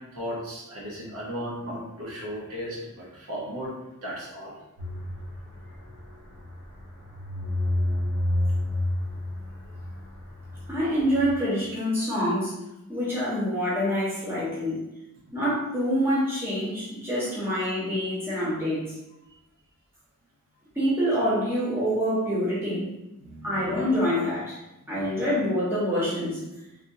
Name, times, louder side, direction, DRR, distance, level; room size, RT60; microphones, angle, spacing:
voice 1, 0.1-3.7 4.0-4.6 9.7-9.8 23.2-23.7 25.0-25.1, equal, 75° right, -4 dB, 0.8 m, -36 dB
sound 1, 4.8-11.4, left 1 dB, 45° right, 0.9 m, -30 dB
voice 2, 10.7-12.5 12.9-14.8 15.3-18.9 20.7-22.9 23.4-24.6 24.9-26.4, equal, 10° right, -9 dB, 1.0 m, -26 dB
3.4 x 2.5 x 2.6 m, 0.93 s
head